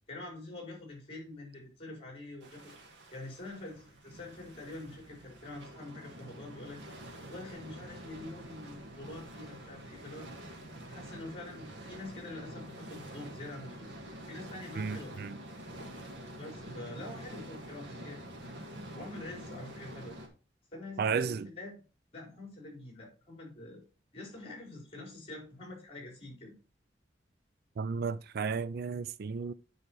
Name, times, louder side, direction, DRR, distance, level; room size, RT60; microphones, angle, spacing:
voice 1, 0.1-2.7 3.1-6.8 7.3-10.3 10.9-13.9 14.2-15.2 16.3-18.2 18.9-20.2 20.7-21.8 22.1-23.8 24.1-26.5, left 2 dB, 35° left, 4.6 m, -45 dB
sound 1, 2.4-20.3, right 1 dB, 90° right, 2.1 m, -47 dB
voice 2, 14.8-15.4 21.0-21.5 27.8-29.5, right 5 dB, 60° right, 0.4 m, -33 dB
9.5 x 5.0 x 4.6 m
head